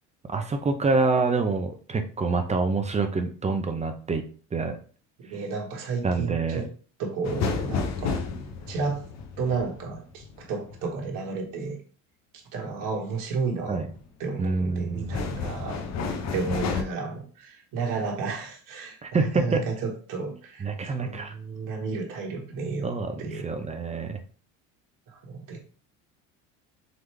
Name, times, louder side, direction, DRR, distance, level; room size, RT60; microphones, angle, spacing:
voice 1, 0.3-4.2 4.5-4.8 6.0-6.6 13.7-13.9 14.4-15.1 19.0-19.6 20.6-21.3 22.8-24.2, right 3 dB, 20° right, 6 dB, 0.6 m, -26 dB
voice 2, 5.2-6.7 7.0-8.2 8.7-9.0 9.4-11.8 12.5-13.8 14.2-15.8 16.3-23.5 25.1-25.6, right 4 dB, 55° right, 1 dB, 1.3 m, -32 dB
sound 1, 7.2-11.1 13.6-14.1 14.5-16.8, left 5 dB, 45° left, 0.8 m, -31 dB
3.9 x 3.0 x 3.2 m, 0.41 s
supercardioid pair, 90°, 37 cm